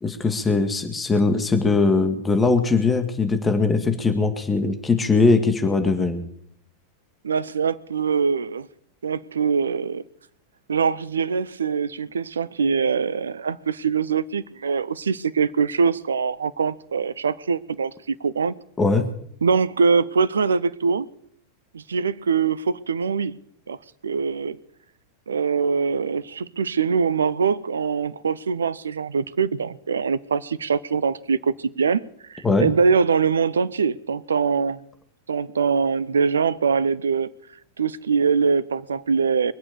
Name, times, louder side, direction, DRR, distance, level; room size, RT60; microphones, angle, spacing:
voice 1, 0.0-6.3 18.8-19.1 32.4-32.7, left 3 dB, 15° left, 2.0 m, -20 dB
voice 2, 7.2-8.7 9.0-10.0 10.7-18.5 19.4-21.1 21.7-23.4 23.7-23.8 24.0-24.6 25.3-32.0 32.3-34.8 35.3-37.3 37.8-39.5, right 5 dB, 70° right, 0.7 m, -23 dB
23.0 x 8.5 x 6.8 m
figure-of-eight pair, 90°, 0 cm